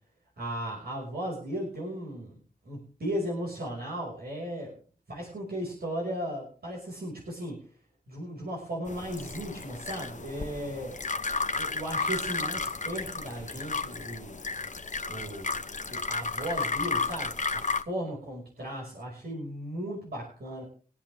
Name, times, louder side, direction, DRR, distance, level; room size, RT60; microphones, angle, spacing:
voice 1, 0.4-4.7 5.1-7.7 8.1-11.0 11.5-14.4 15.1-15.5 15.9-20.6, right 1 dB, 80° right, -4 dB, 5.7 m, -36 dB
sound 1, 8.9-17.8, left 4 dB, 50° left, 1.0 m, -33 dB
24.5 x 8.4 x 3.5 m, 0.42 s
wide cardioid pair, 70°, 16 cm